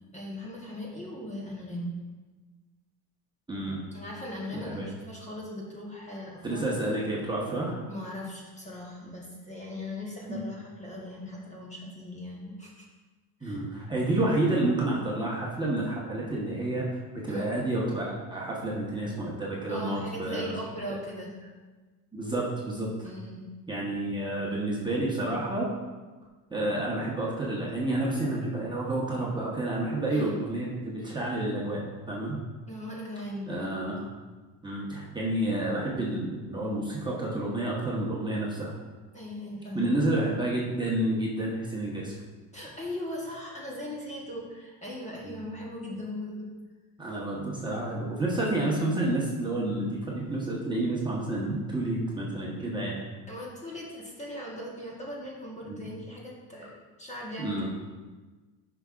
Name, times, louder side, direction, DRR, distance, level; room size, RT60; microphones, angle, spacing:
voice 1, 0.1-1.9 3.9-6.9 7.9-12.9 13.4-13.6 17.3-17.5 19.7-21.3 23.0-23.4 30.1-30.4 32.7-33.6 39.1-39.9 42.5-46.5 53.3-57.7, left 1 dB, 15° left, -3 dB, 1.1 m, -39 dB
voice 2, 3.5-3.8 4.5-4.9 6.4-7.8 10.3-10.4 13.4-20.5 22.1-23.1 23.7-25.7 26.5-32.4 33.5-34.0 34.6-38.7 39.7-42.1 45.2-45.4 47.0-53.0 55.6-55.9 57.4-57.7, right 1 dB, 10° right, -5 dB, 1.1 m, -30 dB
9.5 x 5.9 x 2.5 m, 1.3 s
cardioid pair, 135°, 46 cm